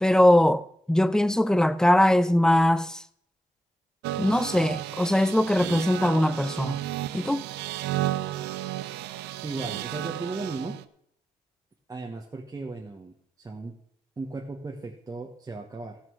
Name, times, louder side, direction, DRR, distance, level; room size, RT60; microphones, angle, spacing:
voice 1, 0.0-3.0 4.2-6.8 7.1-7.4, left 1 dB, 5° left, 0.5 m, -21 dB
sound 1, 4.0-10.8, right 14 dB, 85° right, 0.6 m, -33 dB
voice 2, 9.4-10.8 11.9-13.8 14.2-16.0, right 3 dB, 20° right, 1.3 m, -36 dB
14.5 x 6.4 x 6.4 m
cardioid pair, 110°, 17 cm